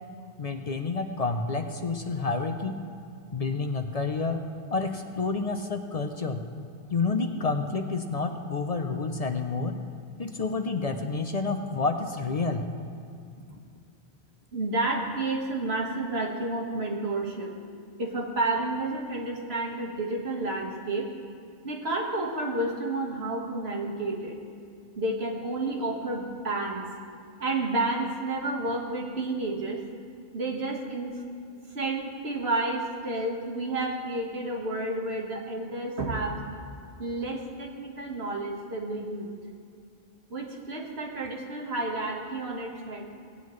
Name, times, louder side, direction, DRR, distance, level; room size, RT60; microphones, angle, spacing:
voice 1, 0.4-2.8 3.3-4.4 4.7-6.4 6.9-9.8 10.2-12.7, left 4 dB, 45° left, 6 dB, 0.6 m, -29 dB
voice 2, 14.5-17.5 18.0-21.1 21.6-24.4 25.0-26.8 27.4-29.8 30.3-31.2 31.7-36.4 37.0-39.3 40.3-43.1, right 2 dB, 85° right, -1 dB, 1.8 m, -30 dB
18.0 x 9.2 x 3.2 m, 2.4 s
omnidirectional pair, 1.0 m